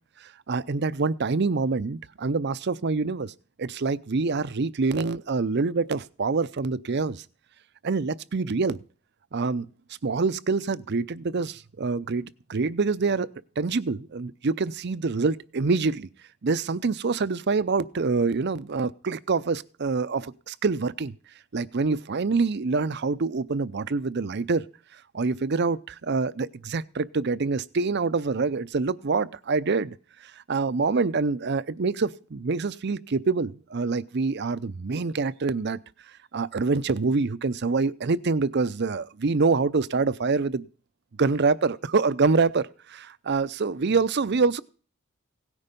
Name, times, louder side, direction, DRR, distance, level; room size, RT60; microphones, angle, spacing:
voice 1, 0.2-3.3 3.6-7.2 7.8-8.8 9.3-9.7 10.0-13.3 13.6-16.1 16.4-21.2 21.5-24.6 25.1-29.9 30.5-35.8 36.3-40.7 41.2-44.6, right 4 dB, 50° right, 16 dB, 0.6 m, -26 dB
17.0 x 9.8 x 5.3 m, 0.39 s
head